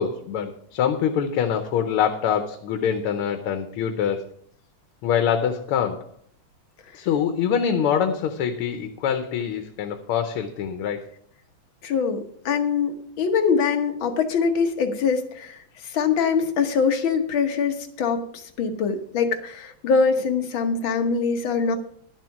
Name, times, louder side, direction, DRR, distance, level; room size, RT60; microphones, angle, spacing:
voice 1, 0.0-4.2 5.0-6.1 6.9-11.1, left 8 dB, 90° left, 7 dB, 1.8 m, -24 dB
voice 2, 11.8-21.8, left 5 dB, 65° left, 6 dB, 1.9 m, -23 dB
11.5 x 7.5 x 5.9 m, 0.63 s
omnidirectional pair, 2.4 m